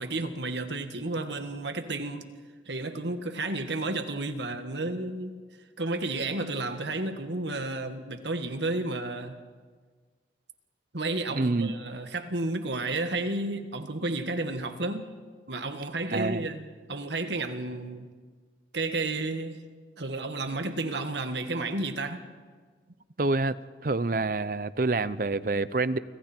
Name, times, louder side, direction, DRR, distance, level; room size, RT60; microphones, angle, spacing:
voice 1, 0.0-2.3 2.7-5.4 5.8-9.4 10.9-15.1 15.5-18.1 18.7-19.6 20.0-22.2, right 2 dB, 75° right, 1.7 m, -32 dB
voice 2, 11.3-11.7 16.1-16.5 23.2-23.6 23.8-26.0, right 3 dB, 50° right, 0.6 m, -27 dB
28.5 x 25.5 x 4.5 m
head